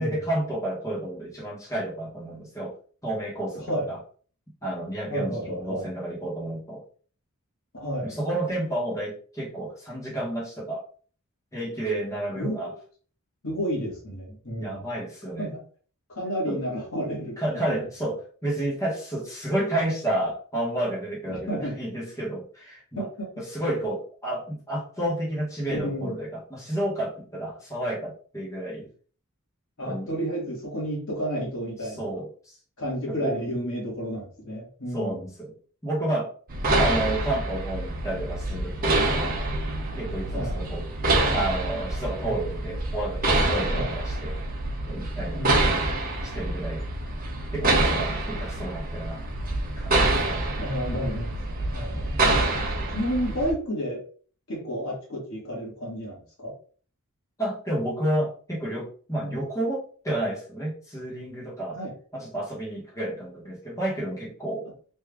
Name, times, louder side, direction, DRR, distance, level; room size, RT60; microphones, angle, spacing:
voice 1, 0.0-2.7 3.0-4.0 4.6-6.8 8.0-10.8 11.5-12.7 14.6-15.5 16.5-16.6 17.4-23.1 23.4-28.9 29.9-30.1 32.0-32.6 33.1-33.4 34.9-35.5 35.8-36.3 36.8-39.4 40.0-44.4 44.9-45.9 46.2-46.8 47.5-49.2 49.8-50.5 57.4-61.8 62.1-64.7, right 1 dB, 15° left, -6 dB, 1.0 m, -31 dB
voice 2, 3.5-3.9 5.1-5.9 7.7-8.1 12.3-12.7 13.4-14.9 15.4-15.6 16.1-17.8 21.3-21.8 23.0-23.3 25.7-26.2 29.8-32.2 32.8-35.2 40.3-40.6 42.2-42.4 43.7-44.0 45.3-45.8 50.6-52.2 52.9-54.1 54.5-56.5 59.2-59.4 61.7-61.9, equal, 65° left, -3 dB, 1.5 m, -31 dB
sound 1, 36.5-53.5, right 2 dB, 40° right, 0.7 m, -26 dB
3.5 x 2.4 x 3.3 m, 0.43 s
head